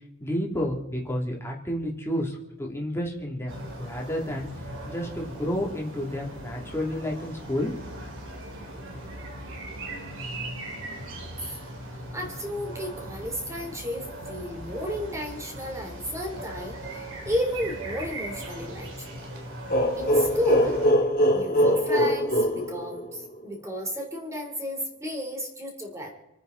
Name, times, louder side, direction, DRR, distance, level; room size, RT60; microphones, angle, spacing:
voice 1, 0.2-7.7, equal, 10° left, -1 dB, 2.8 m, -31 dB
sound 1, 3.5-20.9, right 1 dB, 60° right, 3.0 m, -39 dB
voice 2, 11.9-19.2 20.0-20.8 21.3-26.1, equal, 15° right, 1 dB, 3.6 m, -33 dB
sound 2, 19.7-23.4, equal, 45° left, 2.5 m, -23 dB
28.5 x 9.6 x 4.0 m, 1.0 s
head